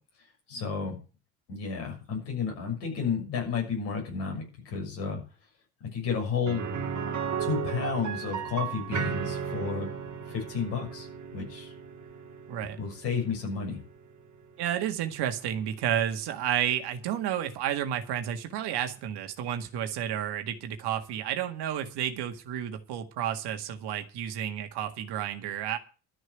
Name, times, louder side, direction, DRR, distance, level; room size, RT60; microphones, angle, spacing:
voice 1, 0.5-1.0 1.5-5.2 5.8-6.7 7.4-9.9 10.3-11.1 11.3-11.7 12.8-13.8, left 5 dB, 70° left, 1 dB, 6.7 m, -32 dB
sound 1, 6.5-16.2 16.5-16.6 19.1-19.2, right 6 dB, 40° right, 2.3 m, -36 dB
voice 2, 14.6-25.8, right 10 dB, 65° right, 7 dB, 1.9 m, -31 dB
13.0 x 6.4 x 9.1 m, 0.36 s
hypercardioid pair, 50°, 43 cm